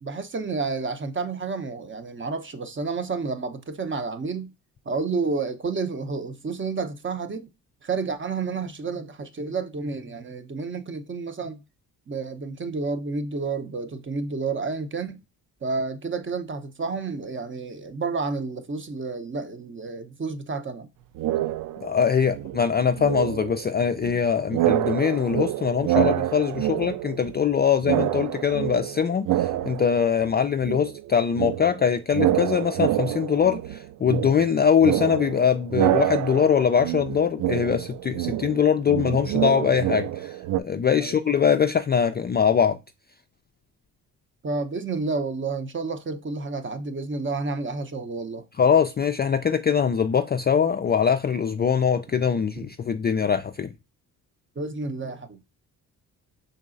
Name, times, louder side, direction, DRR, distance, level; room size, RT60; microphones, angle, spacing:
voice 1, 0.0-4.5 4.8-7.5 7.8-11.6 12.1-15.2 15.6-20.9 41.0-41.2 44.4-48.5 54.6-55.4, right 4 dB, 25° right, 0.8 m, -30 dB
sound 1, 21.2-22.0 22.3-24.2 24.5-27.5 27.8-30.4 30.6-40.6, right 13 dB, 50° right, 0.4 m, -27 dB
voice 2, 21.8-42.8 48.6-53.7, left 7 dB, 25° left, 0.3 m, -22 dB
5.3 x 4.0 x 2.5 m
hypercardioid pair, 50°, 44 cm